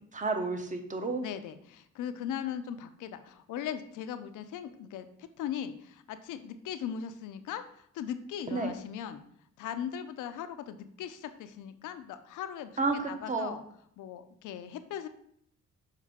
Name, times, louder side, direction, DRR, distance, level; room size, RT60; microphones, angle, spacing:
voice 1, 0.1-1.2 8.5-8.7 12.8-13.6, right 3 dB, 25° right, 5 dB, 0.9 m, -31 dB
voice 2, 1.2-9.2 9.6-13.6 14.0-15.1, left 9 dB, 80° left, 10 dB, 0.6 m, -39 dB
6.5 x 4.6 x 3.6 m, 0.68 s
cardioid pair, 90°, 30 cm